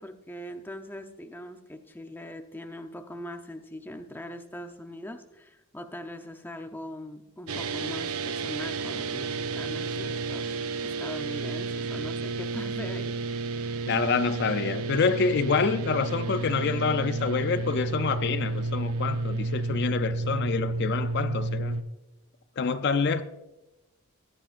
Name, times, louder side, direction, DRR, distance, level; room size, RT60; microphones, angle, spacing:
voice 1, 0.0-13.4, left 1 dB, 10° left, 0.6 m, -41 dB
sound 1, 7.5-21.8, right 3 dB, 80° right, 0.7 m, -31 dB
voice 2, 13.9-21.8 22.6-23.2, left 5 dB, 50° left, 0.4 m, -27 dB
16.0 x 9.8 x 2.5 m
head